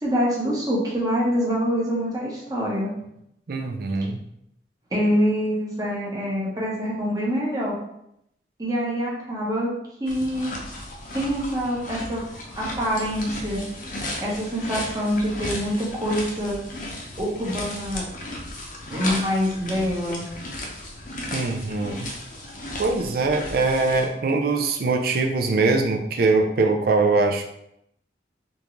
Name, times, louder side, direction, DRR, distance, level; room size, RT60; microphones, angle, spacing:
voice 1, 0.0-2.9 4.9-7.8 8.6-9.7 10.0-10.5 11.1-12.2 12.6-13.6 14.2-16.6 17.2-18.1 18.9-20.2, equal, 20° right, -5 dB, 0.9 m, -25 dB
voice 2, 3.5-4.2 21.3-22.1 22.8-27.4, right 3 dB, 55° right, 4 dB, 0.4 m, -22 dB
sound 1, 10.1-24.1, left 1 dB, 45° left, 0.6 m, -35 dB
3.6 x 2.5 x 3.0 m, 0.78 s
head